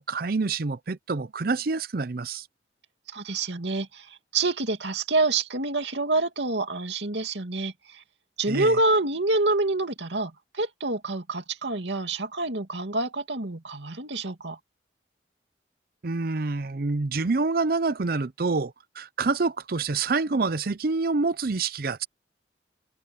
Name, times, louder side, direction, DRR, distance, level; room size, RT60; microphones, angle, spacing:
voice 1, 0.0-2.5 8.5-8.8 16.0-22.1, right 3 dB, 55° right, 0.6 m, -27 dB
voice 2, 3.1-8.0 8.4-14.6, right 2 dB, 80° right, 2.6 m, -27 dB
head